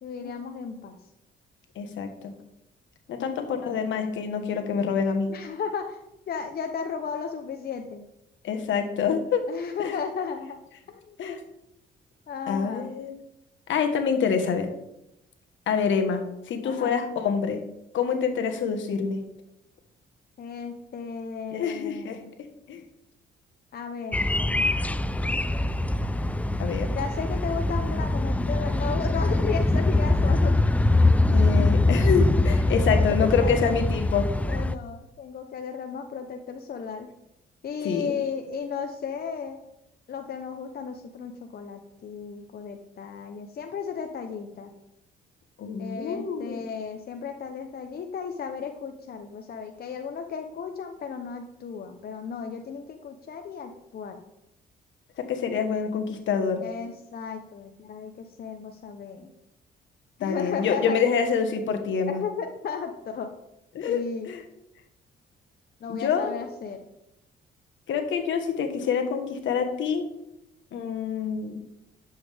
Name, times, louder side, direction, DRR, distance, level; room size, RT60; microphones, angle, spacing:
voice 1, 0.0-1.0 3.2-3.6 5.3-6.0 6.3-8.0 9.5-10.6 11.1-11.2 12.3-12.9 16.6-16.9 20.4-22.3 23.7-24.3 26.9-30.6 32.7-33.8 34.4-37.1 37.6-39.6 40.1-44.7 45.8-54.2 56.6-59.3 60.2-61.0 62.1-63.3 63.9-64.3 65.8-66.8, left 6 dB, 50° left, 5 dB, 0.9 m, -34 dB
voice 2, 1.7-2.3 3.1-5.3 8.4-9.4 9.8-10.0 11.2-11.4 12.5-13.1 13.7-14.7 15.7-17.6 17.9-19.2 21.5-22.2 22.7-22.8 25.5-25.6 26.6-26.9 31.3-34.3 37.8-38.1 45.6-46.6 55.2-56.6 60.2-62.2 63.7-64.4 65.9-66.3 67.9-70.0 70.7-71.6, left 6 dB, 75° left, 6 dB, 1.4 m, -26 dB
sound 1, 24.1-34.7, left 2 dB, 5° left, 0.4 m, -23 dB
11.0 x 7.3 x 3.5 m, 0.85 s
cardioid pair, 90°, 20 cm